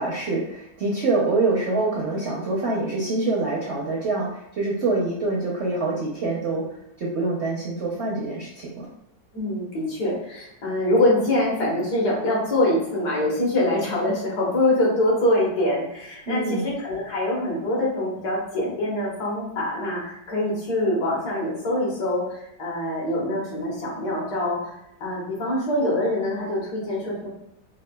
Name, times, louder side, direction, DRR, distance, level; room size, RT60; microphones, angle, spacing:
voice 1, 0.0-6.7 7.0-8.9 16.3-16.7, right 3 dB, 65° right, -4 dB, 0.7 m, -25 dB
voice 2, 9.3-24.7 25.0-27.3, left 1 dB, 70° left, -4 dB, 1.6 m, -24 dB
4.6 x 2.4 x 2.2 m, 0.81 s
omnidirectional pair, 1.8 m